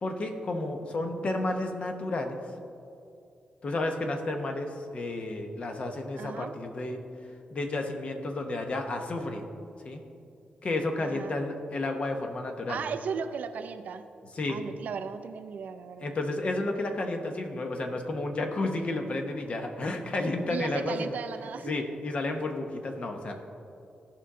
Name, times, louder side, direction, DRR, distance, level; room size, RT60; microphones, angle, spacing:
voice 1, 0.0-2.4 3.6-7.0 7.5-9.4 9.8-10.0 10.6-12.8 14.4-14.6 16.0-21.0 21.7-23.4, left 2 dB, 45° left, 4 dB, 0.9 m, -31 dB
voice 2, 6.2-6.5 11.0-11.3 12.7-14.1 14.5-16.2 20.5-21.8, right 6 dB, 70° right, 10 dB, 0.5 m, -36 dB
15.5 x 5.5 x 3.7 m, 2.6 s
cardioid pair, 110°, 3 cm